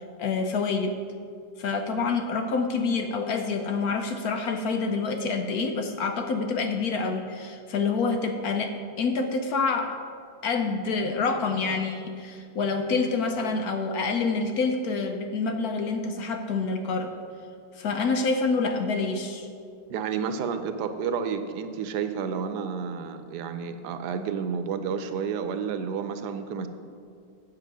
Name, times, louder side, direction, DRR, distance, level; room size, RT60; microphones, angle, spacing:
voice 1, 0.2-0.9 1.6-10.0 10.4-17.1 17.8-19.5, left 4 dB, 70° left, 5 dB, 1.1 m, -27 dB
voice 2, 19.9-26.7, right 6 dB, 85° right, 9 dB, 1.2 m, -30 dB
8.3 x 7.8 x 6.1 m, 2.3 s
omnidirectional pair, 1.8 m